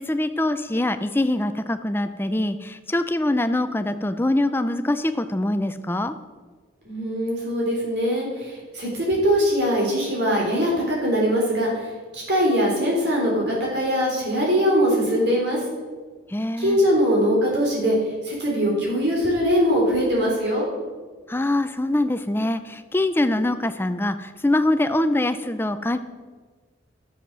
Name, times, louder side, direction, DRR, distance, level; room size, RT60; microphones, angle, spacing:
voice 1, 0.0-6.1 16.3-16.8 21.3-26.0, left 1 dB, 10° left, 10 dB, 0.4 m, -23 dB
voice 2, 6.9-11.7 12.1-15.6 16.6-17.9 18.2-20.7, equal, 60° right, -3 dB, 3.6 m, -21 dB
12.0 x 7.3 x 6.0 m, 1.4 s
head